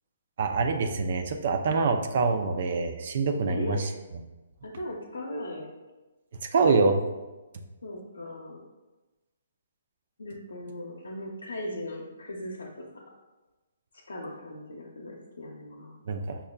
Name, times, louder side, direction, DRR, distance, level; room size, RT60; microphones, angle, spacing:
voice 1, 0.4-3.9 6.5-7.0 16.1-16.4, right 4 dB, 55° right, 6 dB, 0.4 m, -25 dB
voice 2, 3.5-3.9 4.6-5.7 7.8-8.6 10.2-12.8 14.1-16.0, left 1 dB, 90° left, -4 dB, 0.6 m, -38 dB
5.5 x 2.3 x 2.2 m, 1.1 s
hypercardioid pair, 150°, 0 cm